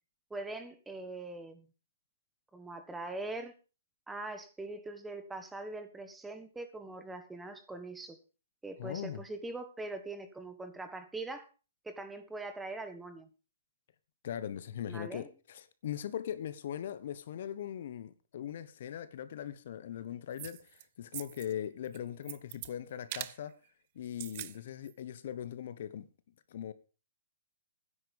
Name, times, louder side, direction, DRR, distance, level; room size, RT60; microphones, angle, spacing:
voice 1, 0.3-1.7 2.5-3.5 4.1-8.2 8.6-11.5 11.8-13.3 14.9-15.3, right 2 dB, 5° right, 1.4 m, -42 dB
voice 2, 8.8-9.2 14.2-23.5 23.9-26.1 26.5-26.7, left 10 dB, 55° left, 1.1 m, -40 dB
sound 1, 20.4-20.8 21.1-21.5 21.9-22.7 23.1-23.4 24.1-24.6 24.9-25.0, right 16 dB, 40° right, 0.7 m, -42 dB
12.5 x 10.0 x 5.3 m
hypercardioid pair, 150°, 0 cm